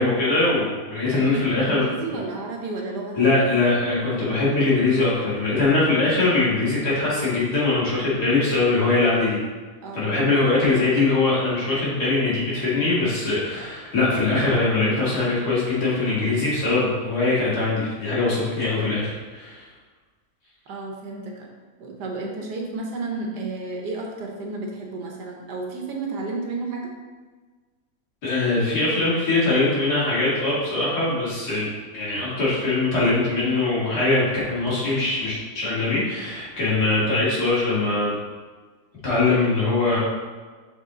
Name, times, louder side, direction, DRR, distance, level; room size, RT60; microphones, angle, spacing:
voice 1, 0.0-1.9 3.1-9.4 9.9-19.6 28.2-38.1 39.0-40.0, left 3 dB, 75° left, -8 dB, 2.6 m, -22 dB
voice 2, 1.1-3.7 9.8-10.1 20.7-21.5 21.8-26.9, right 3 dB, 85° right, 0 dB, 1.6 m, -32 dB
5.7 x 4.4 x 3.7 m, 1.4 s
omnidirectional pair, 1.7 m